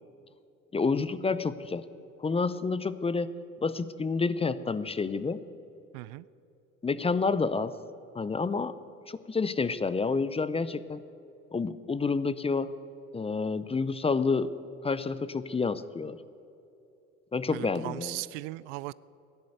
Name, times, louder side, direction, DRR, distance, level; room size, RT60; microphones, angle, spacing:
voice 1, 0.7-1.8 2.2-3.3 3.6-5.4 6.8-7.7 8.1-8.7 9.1-11.0 11.5-12.7 13.1-14.5 14.8-16.2 17.3-18.2, left 4 dB, 15° left, 15 dB, 0.6 m, -29 dB
voice 2, 5.9-6.3 17.5-18.9, right 21 dB, 65° right, 21 dB, 0.5 m, -38 dB
15.5 x 11.0 x 8.0 m, 2.6 s
hypercardioid pair, 75°, 39 cm